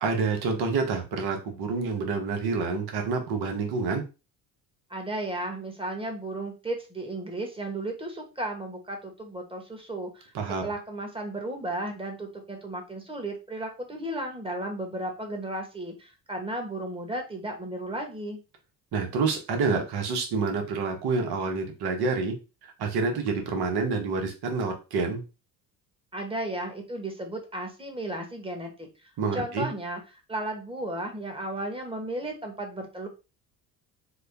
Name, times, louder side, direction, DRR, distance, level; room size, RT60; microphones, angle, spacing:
voice 1, 0.0-4.0 10.3-10.6 18.9-22.3 22.6-25.2 29.2-29.7, right 4 dB, 60° right, 3 dB, 1.2 m, -28 dB
voice 2, 4.9-10.3 10.6-18.4 26.1-28.9 29.3-33.1, right 1 dB, 10° right, 3 dB, 1.3 m, -34 dB
3.7 x 2.3 x 3.4 m, 0.30 s
supercardioid pair, 75°, 44 cm